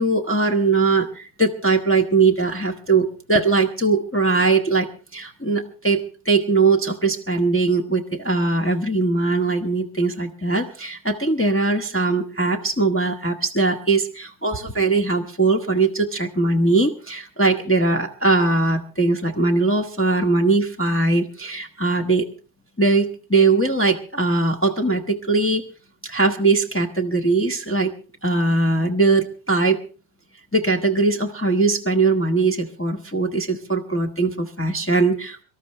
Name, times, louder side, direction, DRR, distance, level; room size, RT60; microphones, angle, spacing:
voice 1, 0.0-22.3 22.8-25.6 26.0-27.9 28.2-29.8 30.5-35.4, right 3 dB, 10° left, 2 dB, 1.0 m, -20 dB
24.5 x 13.0 x 3.2 m, 0.35 s
omnidirectional pair, 1.2 m